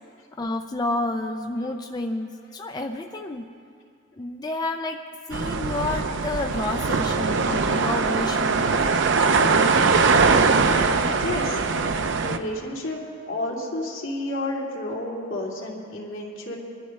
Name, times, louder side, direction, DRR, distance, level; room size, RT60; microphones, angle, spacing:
voice 1, 0.4-3.5 4.2-5.0 5.3-9.0, left 2 dB, 20° left, 4 dB, 0.4 m, -30 dB
sound 1, 5.3-12.4, right 4 dB, 65° right, 0.6 m, -21 dB
voice 2, 10.9-11.6 12.2-13.0 13.3-16.6, left 1 dB, 70° left, -3 dB, 2.7 m, -31 dB
23.0 x 12.0 x 3.2 m, 2.3 s
head